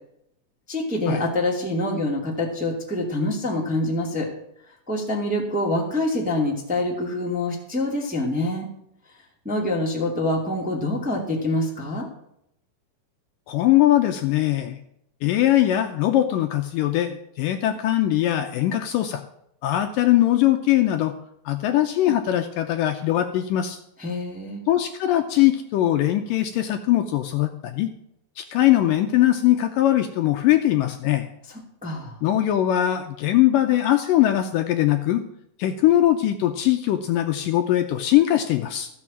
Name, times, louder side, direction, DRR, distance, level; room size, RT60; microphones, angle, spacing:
voice 1, 0.7-4.3 4.9-8.7 9.4-12.0 24.0-24.6 31.8-32.1, left 1 dB, 5° right, -1 dB, 1.4 m, -25 dB
voice 2, 13.5-14.8 15.2-19.2 19.6-21.1 21.5-23.8 24.7-27.9 28.4-31.3 32.2-35.2 35.6-38.9, left 13 dB, 75° left, 6 dB, 2.2 m, -21 dB
14.5 x 6.4 x 7.3 m, 0.76 s
omnidirectional pair, 4.4 m